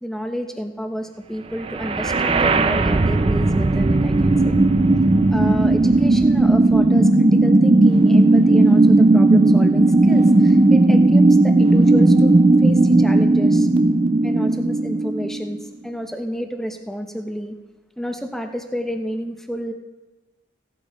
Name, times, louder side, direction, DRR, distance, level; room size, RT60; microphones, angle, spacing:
voice 1, 0.0-4.6 5.3-12.3 12.6-13.7 14.2-17.5 18.0-19.7, equal, ahead, 5 dB, 0.8 m, -30 dB
sound 1, 1.7-15.7, right 2 dB, 30° right, 0.4 m, -15 dB
16.0 x 12.0 x 3.1 m, 1.2 s
head